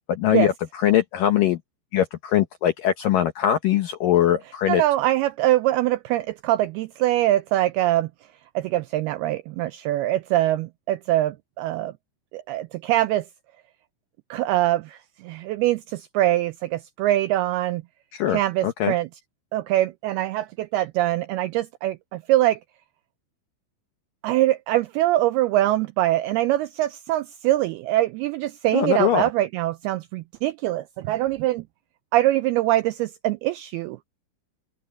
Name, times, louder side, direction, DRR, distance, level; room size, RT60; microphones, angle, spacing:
voice 1, 0.1-1.6 1.9-4.8 18.1-18.9 28.7-29.3, left 11 dB, 70° left, 2.1 m, -22 dB
voice 2, 4.7-8.1 8.6-11.9 12.3-13.3 14.3-17.8 18.3-19.1 19.5-22.6 24.2-31.6 32.1-34.0, right 15 dB, 85° right, 2.3 m, -23 dB
open air
omnidirectional pair, 5.0 m